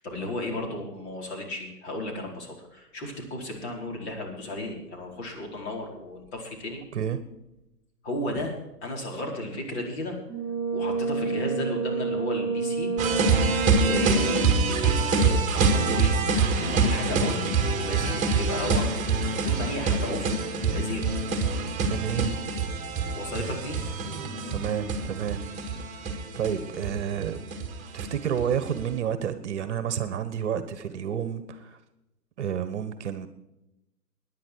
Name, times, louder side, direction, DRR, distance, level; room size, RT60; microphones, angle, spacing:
voice 1, 0.0-6.8 8.0-8.5 8.8-10.2 10.7-12.9 13.3-13.4 13.8-17.5 17.8-18.9 19.3-20.3 20.6-21.1 23.1-23.8, left 1 dB, 40° left, 1 dB, 4.7 m, -34 dB
Brass instrument, 10.3-14.6, right 4 dB, 10° left, 4.9 m, -29 dB
sound 1, 13.0-28.8, right 4 dB, 15° right, 2.1 m, -25 dB
voice 2, 21.9-22.4 24.5-25.4 25.8-26.1 26.3-27.4 27.9-31.8 32.4-33.3, right 8 dB, 45° right, 12 dB, 1.3 m, -30 dB
18.0 x 10.5 x 4.7 m, 0.92 s
figure-of-eight pair, 130°, 48 cm